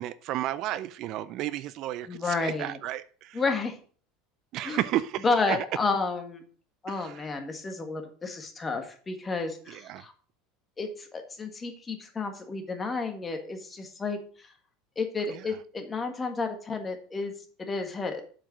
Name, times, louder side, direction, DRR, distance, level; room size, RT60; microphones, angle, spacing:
voice 1, 0.0-3.4 4.5-5.6 6.9-7.3 9.7-10.0 15.3-15.4, right 13 dB, 55° right, 0.4 m, -33 dB
voice 2, 2.1-2.8 3.3-3.8 4.6-4.8 5.2-6.4 6.8-10.1 10.8-14.5 14.9-17.3 17.6-18.2, left 4 dB, 20° left, 1.7 m, -31 dB
7.5 x 5.0 x 5.9 m
supercardioid pair, 120°, 0 cm